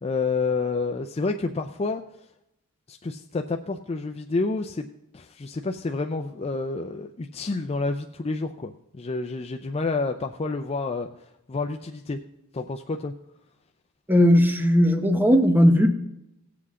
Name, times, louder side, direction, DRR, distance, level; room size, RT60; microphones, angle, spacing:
voice 1, 0.0-2.0 2.9-4.9 5.1-12.2 12.5-13.1, left 3 dB, 25° left, 4 dB, 0.4 m, -29 dB
voice 2, 14.1-15.9, equal, 10° right, 6 dB, 0.8 m, -17 dB
17.5 x 7.7 x 3.7 m, 0.84 s
head